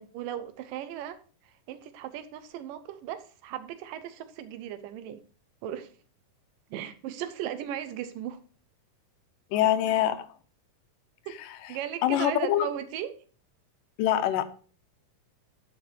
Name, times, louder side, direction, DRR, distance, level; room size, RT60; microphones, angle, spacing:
voice 1, 0.0-5.2 5.6-5.9 6.7-8.4 11.3-11.4 11.7-13.2, right 11 dB, 85° right, 2.5 m, -37 dB
voice 2, 9.5-10.3 11.4-11.5 12.0-12.7 14.0-14.4, left 12 dB, 80° left, 2.4 m, -24 dB
11.5 x 5.0 x 4.5 m
omnidirectional pair, 3.8 m